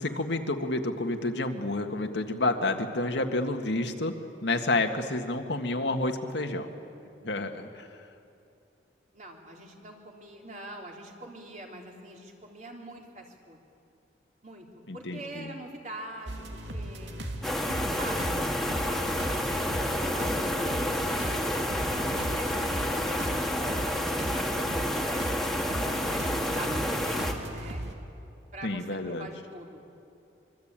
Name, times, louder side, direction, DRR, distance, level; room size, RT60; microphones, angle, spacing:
voice 1, 0.0-4.1 4.4-6.7 7.2-7.9 14.9-15.5 28.6-29.3, left 2 dB, 70° left, 5 dB, 1.8 m, -29 dB
voice 2, 9.1-13.6 14.4-14.7 14.9-17.1 18.0-18.4 19.2-21.7 22.4-27.8 28.5-29.9, right 1 dB, 40° right, 0 dB, 3.5 m, -44 dB
sound 1, 16.3-27.9, right 1 dB, 75° right, 2.5 m, -37 dB
sound 2, 17.4-27.3, left 1 dB, ahead, 1.8 m, -29 dB
24.5 x 24.0 x 9.0 m, 2.8 s
head